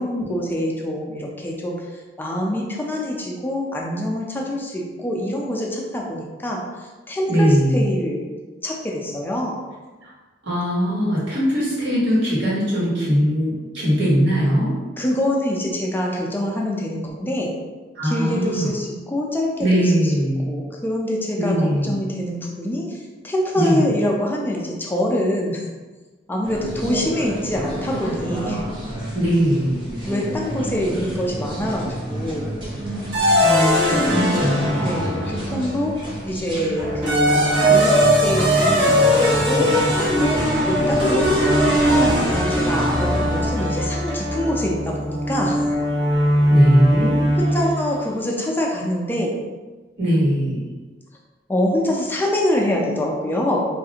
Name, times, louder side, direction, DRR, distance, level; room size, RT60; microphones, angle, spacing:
voice 1, 0.0-1.7 2.2-9.6 15.0-17.5 18.0-20.1 20.5-21.5 21.8-23.0 23.2-25.6 26.3-28.6 30.0-32.5 34.8-36.0 36.2-39.7 40.2-40.4 40.6-41.3 41.9-45.6 47.4-49.3 51.5-53.7, left 1 dB, 10° left, -2 dB, 0.4 m, -25 dB
voice 2, 7.3-7.8 10.4-14.7 18.0-18.7 19.6-20.4 21.4-21.9 23.5-23.9 29.1-29.8 33.4-34.9 46.5-47.2 50.0-50.6, equal, 85° right, -7 dB, 1.3 m, -20 dB
sound 1, 26.4-43.5, right 1 dB, 25° right, 0.7 m, -31 dB
sound 2, 33.1-35.7 36.8-47.9, equal, 70° right, 0.9 m, -19 dB
3.1 x 2.4 x 2.8 m, 1.3 s
head